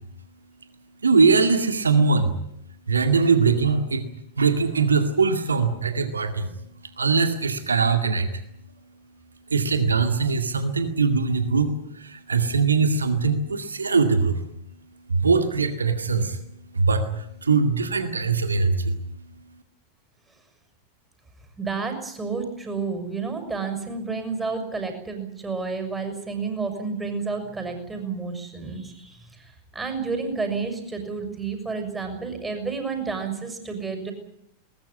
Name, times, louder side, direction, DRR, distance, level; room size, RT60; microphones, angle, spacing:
voice 1, 1.0-2.3 2.9-4.0 4.4-6.5 7.0-8.3 9.5-14.4 15.1-16.4 16.7-19.0, right 4 dB, 75° right, 8 dB, 2.1 m, -21 dB
voice 2, 21.6-34.1, right 4 dB, 10° right, 6 dB, 6.6 m, -30 dB
21.0 x 20.5 x 9.7 m, 0.75 s
figure-of-eight pair, 90°, 0 cm